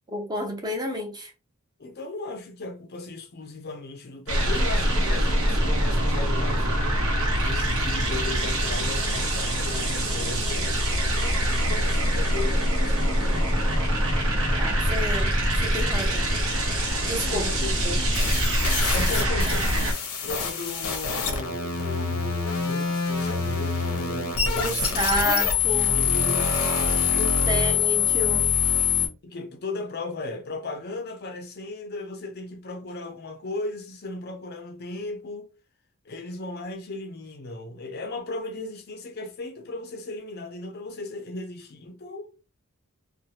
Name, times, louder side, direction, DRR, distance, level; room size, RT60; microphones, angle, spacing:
voice 1, 0.1-1.3 14.6-15.3 15.6-16.3 17.1-17.4 17.8-18.0 24.5-26.0 27.1-28.5, equal, 20° right, 0.7 m, -30 dB
voice 2, 1.8-6.8 7.4-10.9 11.2-13.6 17.3-17.7 18.9-25.4 25.7-26.7 27.5-27.7 29.2-35.5 36.0-42.3, left 2 dB, 45° left, 0.5 m, -36 dB
sound 1, 4.3-19.9, equal, 75° right, 1.0 m, -24 dB
sound 2, 18.1-29.1, left 6 dB, 85° left, 0.8 m, -25 dB
3.1 x 2.2 x 2.8 m
head